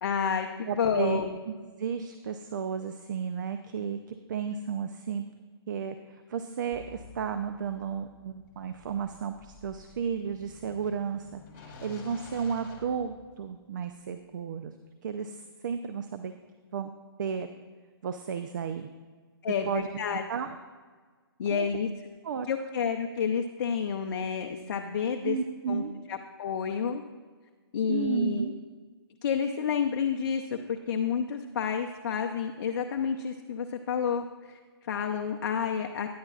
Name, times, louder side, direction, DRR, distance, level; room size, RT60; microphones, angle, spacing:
voice 1, 0.0-1.4 19.4-20.2 21.4-21.9 22.5-25.4 25.7-25.8 26.1-27.0 27.7-28.5 29.2-36.2, left 7 dB, 50° left, 4 dB, 0.6 m, -30 dB
voice 2, 0.7-1.2 1.8-5.2 5.7-14.7 15.0-16.3 16.7-16.9 17.2-17.5 18.0-18.9 19.7-20.6 21.5-21.7 22.2-22.5 25.2-25.9 27.9-28.5, right 7 dB, 50° right, 9 dB, 0.5 m, -33 dB
sound 1, 6.7-13.6, left 3 dB, 30° left, 1.9 m, -50 dB
13.0 x 10.5 x 2.4 m, 1.5 s
hypercardioid pair, 155°, 13 cm